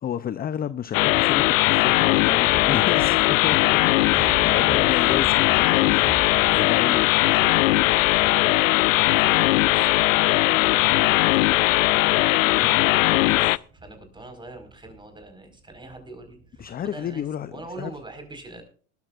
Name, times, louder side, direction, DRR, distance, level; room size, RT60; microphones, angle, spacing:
voice 1, 0.0-7.1 12.5-12.8 16.6-17.9, left 9 dB, 25° left, 0.6 m, -31 dB
sound 1, 0.9-13.6, left 19 dB, 80° left, 0.6 m, -19 dB
sound 2, 1.0-16.9, right 2 dB, 35° right, 3.7 m, -42 dB
voice 2, 6.5-12.0 12.4-17.3 17.5-18.6, right 2 dB, 10° right, 4.8 m, -43 dB
20.0 x 13.0 x 2.5 m
hypercardioid pair, 95°, 39 cm